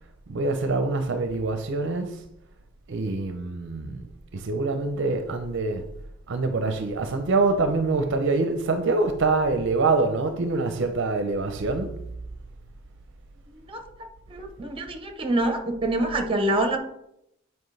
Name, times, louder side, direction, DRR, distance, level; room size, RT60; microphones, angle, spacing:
voice 1, 0.3-2.2 2.9-4.1 4.3-5.8 6.3-12.0, right 3 dB, 60° right, 0.5 m, -25 dB
voice 2, 14.3-16.8, right 1 dB, 25° right, 0.8 m, -25 dB
7.8 x 4.6 x 3.2 m
head